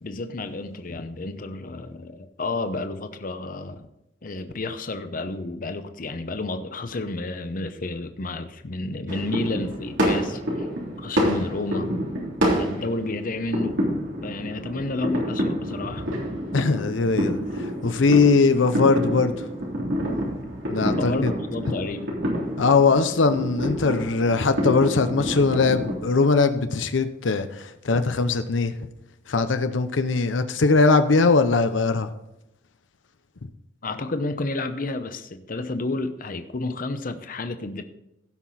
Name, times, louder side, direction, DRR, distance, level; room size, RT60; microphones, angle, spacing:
voice 1, 0.0-3.9 4.2-10.7 11.0-11.9 12.5-13.8 14.2-16.1 20.9-22.1 33.8-37.8, left 2 dB, 50° left, 9 dB, 0.8 m, -31 dB
sound 1, 9.1-26.0, equal, 85° right, 3.3 m, -28 dB
voice 2, 16.5-17.4 17.8-19.3 20.7-21.3 22.6-28.7 29.3-32.1, left 4 dB, 85° left, 9 dB, 0.7 m, -20 dB
16.5 x 5.9 x 4.2 m, 0.85 s
head